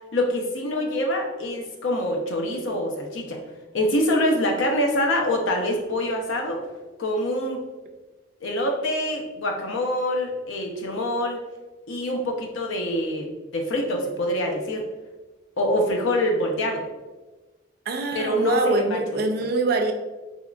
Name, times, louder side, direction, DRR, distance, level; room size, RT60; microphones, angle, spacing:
voice 1, 0.1-3.4 3.7-6.6 7.0-7.6 8.4-11.4 11.9-13.3 13.5-14.8 15.6-16.8 18.1-19.3, left 1 dB, 80° left, 1 dB, 0.6 m, -25 dB
voice 2, 17.9-19.9, right 2 dB, 55° right, 5 dB, 0.4 m, -24 dB
3.6 x 3.0 x 2.3 m, 1.2 s
head